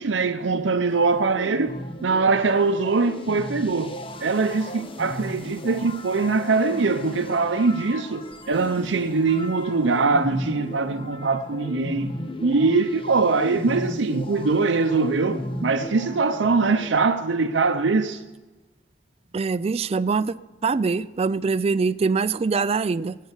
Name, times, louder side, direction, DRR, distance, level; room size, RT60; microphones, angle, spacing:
voice 1, 0.0-12.1 12.4-18.2, right 4 dB, 85° right, 0.6 m, -22 dB
sound 1, 0.9-16.9, left 1 dB, 30° left, 0.9 m, -36 dB
voice 2, 19.3-20.3 20.6-23.2, right 4 dB, 35° right, 0.4 m, -23 dB
19.5 x 7.5 x 8.1 m
head